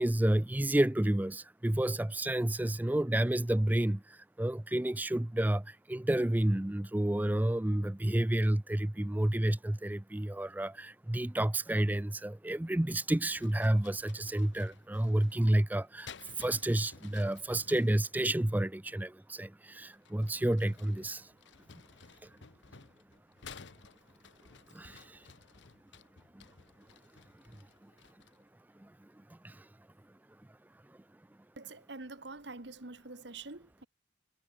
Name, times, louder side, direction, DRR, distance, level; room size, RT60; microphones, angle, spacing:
voice 1, 0.0-21.3 22.2-22.4 24.7-25.3 26.3-26.4 27.5-27.9 28.8-29.7 30.9-31.0, right 1 dB, 10° right, 0.4 m, -30 dB
sound 1, 13.3-18.2 19.9-28.5, left 5 dB, 65° left, 1.1 m, -55 dB
voice 2, 31.6-33.9, right 3 dB, 60° right, 1.7 m, -46 dB
head